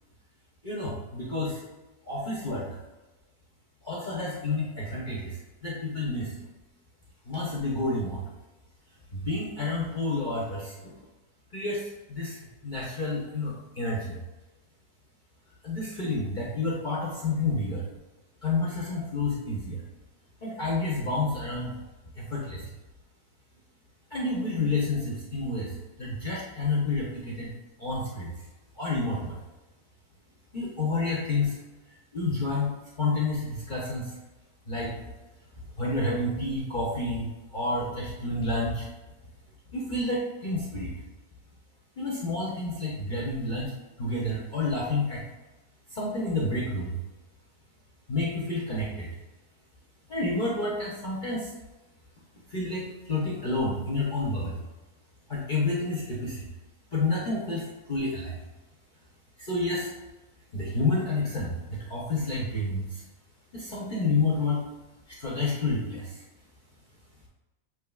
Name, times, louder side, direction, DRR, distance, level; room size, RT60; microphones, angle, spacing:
voice 1, 0.6-1.6 2.0-2.7 3.8-5.4 5.6-6.3 7.3-8.2 9.1-10.9 11.5-14.2 15.6-17.8 18.4-19.8 20.4-21.7 22.2-22.6 24.1-25.7 26.0-27.5 27.8-28.3 28.8-29.4 30.5-31.6 32.1-34.1 34.7-34.9 35.8-38.9 39.7-40.9 42.0-43.7 44.0-45.2 45.9-47.0 48.1-49.1 50.1-51.5 52.5-54.6 55.3-56.4 56.9-58.4 59.4-59.9 60.5-63.0 63.5-64.7 65.1-66.2, left 2 dB, 40° left, -5 dB, 0.7 m, -29 dB
7.2 x 3.1 x 2.3 m, 1.1 s
omnidirectional pair, 1.6 m